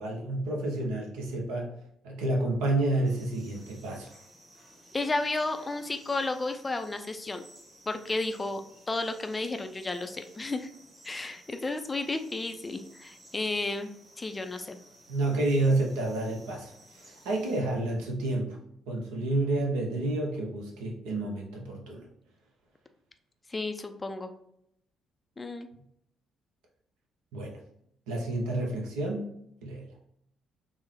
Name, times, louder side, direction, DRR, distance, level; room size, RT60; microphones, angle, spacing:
voice 1, 0.0-1.7 2.0-4.1 15.1-18.6 18.9-22.1 27.3-27.6 28.1-29.3 29.6-29.8, right 2 dB, 70° right, 0 dB, 0.6 m, -30 dB
sound 1, 3.0-17.6, right 1 dB, 30° right, 1.5 m, -56 dB
voice 2, 4.9-7.4 7.9-8.6 8.9-10.7 11.0-13.9 14.2-14.8 23.5-24.3 25.4-25.7, left 2 dB, 25° left, 8 dB, 0.3 m, -32 dB
3.6 x 2.0 x 3.1 m, 0.74 s
figure-of-eight pair, 45°, 0 cm